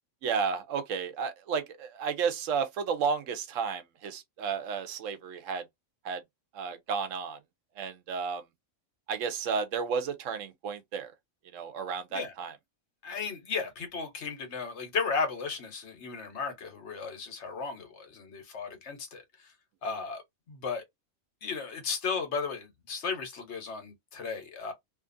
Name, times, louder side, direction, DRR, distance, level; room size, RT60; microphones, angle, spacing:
voice 1, 0.2-5.6 6.0-6.2 6.5-7.4 7.8-8.4 9.1-11.1 11.5-12.6, right 6 dB, 80° right, 1.0 m, -32 dB
voice 2, 13.0-19.2 19.8-20.2 20.5-20.8 21.4-24.7, left 5 dB, 65° left, 1.1 m, -35 dB
2.8 x 2.5 x 2.5 m
omnidirectional pair, 1.3 m